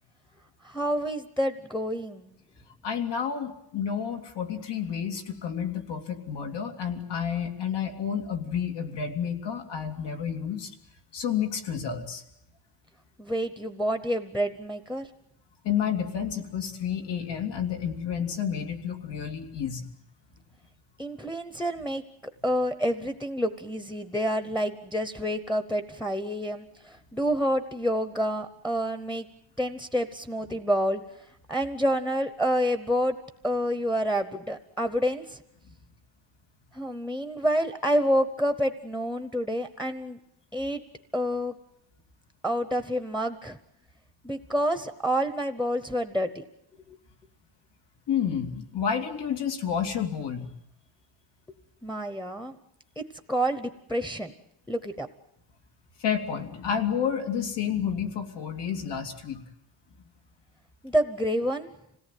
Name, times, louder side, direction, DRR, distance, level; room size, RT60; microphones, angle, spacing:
voice 1, 0.6-2.4 13.2-15.1 21.0-22.0 22.4-29.3 29.6-31.0 31.5-33.2 33.4-35.4 36.7-40.2 40.5-40.8 41.1-41.5 42.4-43.6 44.2-46.4 51.8-52.5 53.0-53.1 53.3-54.3 54.7-55.1 60.8-61.7, equal, 5° left, 9 dB, 0.9 m, -28 dB
voice 2, 2.8-10.7 11.1-12.2 15.6-19.9 48.1-50.5 56.0-59.4, left 8 dB, 80° left, 4 dB, 2.9 m, -30 dB
26.5 x 18.0 x 9.2 m, 0.79 s
wide cardioid pair, 175°, 41 cm